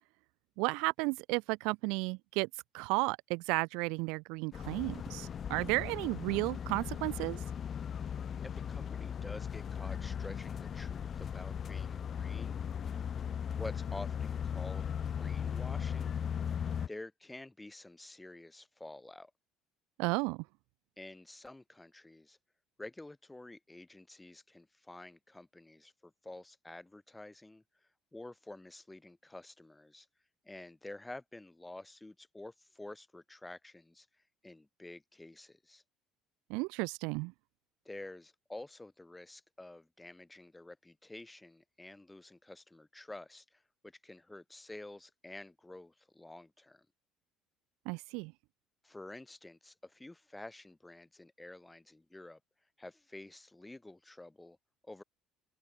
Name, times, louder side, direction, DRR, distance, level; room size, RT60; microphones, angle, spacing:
voice 1, 0.6-2.5 2.7-7.4 20.0-20.4 36.5-37.3 47.9-48.3, right 29 dB, 75° right, 0.5 m, -33 dB
sound 1, 4.5-16.9, left 8 dB, 45° left, 1.4 m, -38 dB
voice 2, 8.4-12.6 13.5-16.2 16.6-19.3 21.0-22.4 22.8-30.1 30.4-34.1 34.4-35.8 37.8-46.9 48.8-52.4 52.8-54.6 54.8-55.0, left 2 dB, 10° left, 7.5 m, -49 dB
open air
hypercardioid pair, 65°, 0 cm